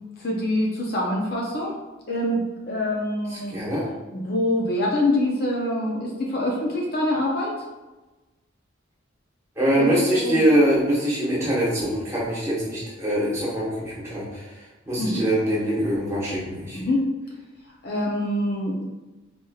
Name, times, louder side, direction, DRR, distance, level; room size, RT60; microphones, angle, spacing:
voice 1, 0.2-1.7 2.1-2.4 2.7-3.6 4.1-7.6 9.8-10.4 15.0-15.2 16.7-17.1 17.8-18.8, left 1 dB, 50° left, -2 dB, 0.6 m, -25 dB
voice 2, 3.3-3.9 9.6-14.4 14.9-16.8, equal, 15° right, -9 dB, 1.2 m, -23 dB
4.3 x 3.0 x 2.3 m, 1.1 s
head